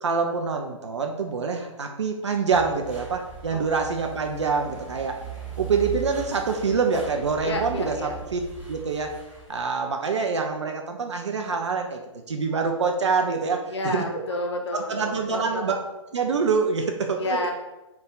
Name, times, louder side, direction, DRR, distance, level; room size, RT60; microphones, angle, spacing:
voice 1, 0.0-5.2 5.6-8.4 8.7-9.2 9.5-12.0 12.3-14.0 14.7-15.8 16.1-17.4, right 5 dB, 60° right, 4 dB, 0.4 m, -25 dB
sound 1, 2.5-9.6, right 7 dB, 10° right, 0.9 m, -39 dB
voice 2, 3.5-3.9 7.4-8.1 13.7-15.7 17.1-17.5, left 1 dB, 55° left, 2 dB, 0.7 m, -30 dB
3.4 x 2.3 x 3.6 m, 1.0 s
figure-of-eight pair, 120°, 17 cm